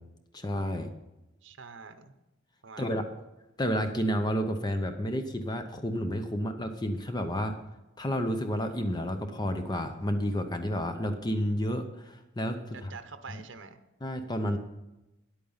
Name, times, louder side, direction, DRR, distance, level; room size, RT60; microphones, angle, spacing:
voice 1, 0.3-0.9 2.8-3.1 3.6-7.6 8.0-12.9 14.0-14.6, equal, 20° left, 7 dB, 0.7 m, -30 dB
voice 2, 1.4-2.1 2.6-3.2 12.7-13.8, right 4 dB, 70° right, 9 dB, 0.8 m, -46 dB
10.0 x 8.8 x 5.6 m, 0.97 s
head